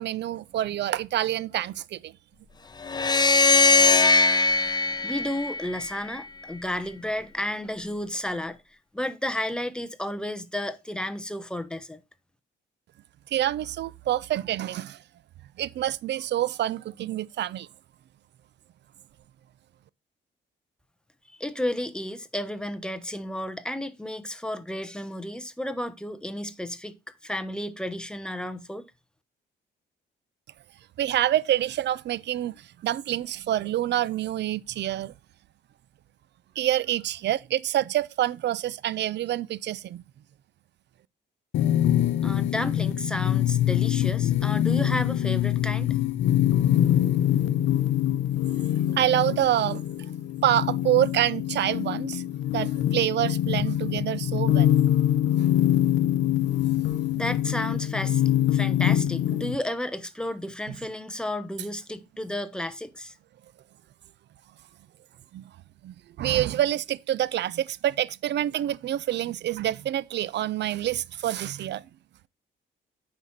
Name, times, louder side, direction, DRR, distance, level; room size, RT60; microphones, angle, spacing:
voice 1, 0.0-2.1 13.3-15.0 15.6-17.7 31.0-32.5 32.8-35.1 36.6-40.0 48.9-50.1 50.4-52.2 52.5-54.9 60.7-60.8 65.3-65.4 65.8-71.8, right 12 dB, 60° right, 0.5 m, -27 dB
sound 1, 2.9-6.2, left 3 dB, 20° left, 0.5 m, -20 dB
voice 2, 5.0-8.6 8.9-12.0 21.4-27.0 27.2-28.8 42.2-46.0 57.1-63.1, left 1 dB, 5° left, 1.1 m, -32 dB
sound 2, 41.5-59.6, left 11 dB, 75° left, 0.8 m, -24 dB
9.3 x 5.6 x 4.2 m
cardioid pair, 90°, 20 cm